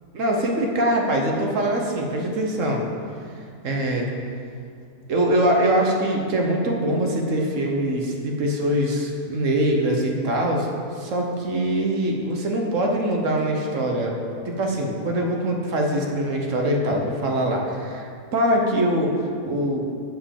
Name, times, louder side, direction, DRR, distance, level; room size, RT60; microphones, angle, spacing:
voice 1, 0.1-2.8 3.6-4.1 5.1-10.7 11.0-14.2 14.4-19.8, right 1 dB, 55° right, 1 dB, 1.2 m, -23 dB
7.9 x 4.6 x 7.2 m, 2.3 s
omnidirectional pair, 1.7 m